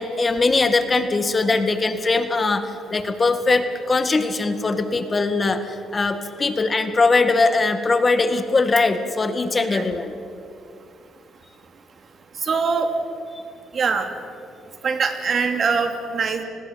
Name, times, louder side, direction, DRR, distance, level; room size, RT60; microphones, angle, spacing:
voice 1, 0.0-10.1, left 3 dB, 30° left, 9 dB, 1.9 m, -21 dB
voice 2, 12.4-12.9 13.7-14.1 14.8-16.4, right 5 dB, 50° right, 6 dB, 2.9 m, -22 dB
30.0 x 20.5 x 7.5 m, 2.5 s
cardioid pair, 90°, 0 cm